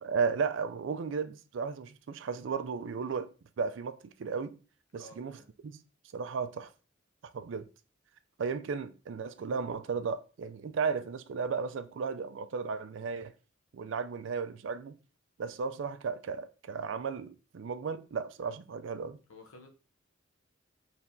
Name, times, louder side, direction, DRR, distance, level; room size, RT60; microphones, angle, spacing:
voice 1, 0.0-3.3 3.6-4.6 4.9-5.3 5.6-5.7 6.1-6.7 7.3-7.7 8.4-13.3 13.7-15.0 15.4-19.2, right 5 dB, 65° right, 0.4 m, -34 dB
voice 2, 4.9-5.5 19.3-19.7, left 2 dB, 85° left, 0.7 m, -52 dB
4.6 x 3.2 x 2.6 m
head